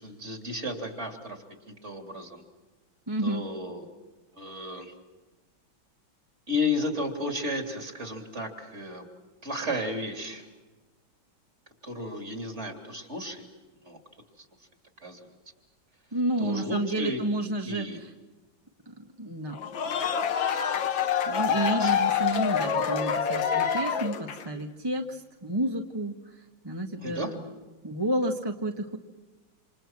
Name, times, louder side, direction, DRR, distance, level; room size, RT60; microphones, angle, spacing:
voice 1, 0.0-1.4 1.7-2.4 3.2-3.9 4.4-4.9 6.5-9.1 9.4-10.5 11.8-13.5 13.8-14.0 14.4-14.5 15.0-15.3 16.4-17.2 17.7-18.0 21.8-22.0 27.0-27.4, left 1 dB, 35° right, 4 dB, 3.6 m, -33 dB
voice 2, 3.1-3.4 16.1-18.1 18.9-19.6 21.3-26.2 26.6-27.4 27.8-29.0, right 1 dB, 15° right, 2 dB, 1.4 m, -30 dB
sound 1, 19.5-24.6, left 7 dB, 70° left, 2.0 m, -26 dB
29.0 x 27.5 x 6.1 m, 1.2 s
omnidirectional pair, 2.2 m